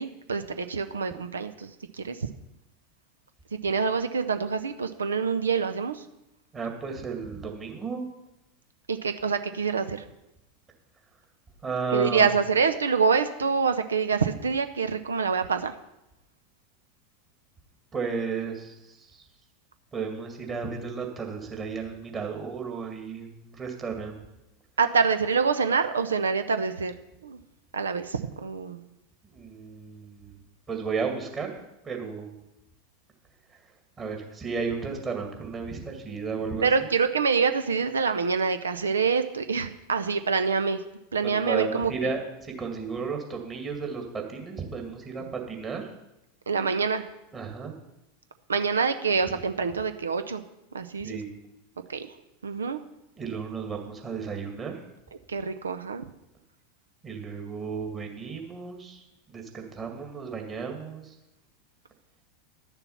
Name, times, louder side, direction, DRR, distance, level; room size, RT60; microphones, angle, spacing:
voice 1, 0.0-2.2 3.5-6.0 8.9-10.0 11.9-15.7 24.8-26.9 27.2-27.4 27.7-28.8 36.6-40.8 41.1-42.2 45.2-45.3 46.5-47.1 48.5-50.4 50.7-51.2 51.9-52.1 52.4-52.8 55.3-56.0, right 5 dB, 75° right, 10 dB, 0.6 m, -26 dB
voice 2, 6.5-8.1 11.6-12.3 17.9-19.1 19.9-24.2 29.3-30.3 30.7-31.5 31.8-32.3 34.0-36.7 41.2-45.9 47.3-47.7 51.0-51.3 53.2-54.8 57.0-59.0 59.3-61.1, right 5 dB, 25° right, 2 dB, 2.1 m, -33 dB
11.5 x 6.9 x 5.7 m, 0.90 s
figure-of-eight pair, 85°, 0 cm